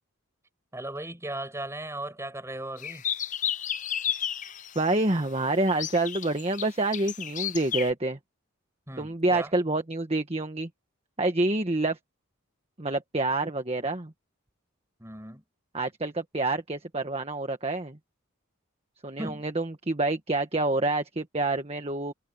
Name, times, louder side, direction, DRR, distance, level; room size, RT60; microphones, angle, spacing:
voice 1, 0.7-3.0 8.9-9.5 15.0-15.4 19.2-19.5, right 1 dB, 15° right, 6.9 m, -37 dB
sound 1, 2.8-4.9 5.7-7.9, left 9 dB, 35° left, 0.7 m, -32 dB
voice 2, 4.7-8.2 9.0-10.7 11.2-12.0 12.8-14.1 15.7-18.0 19.0-22.1, right 2 dB, 30° right, 1.5 m, -27 dB
head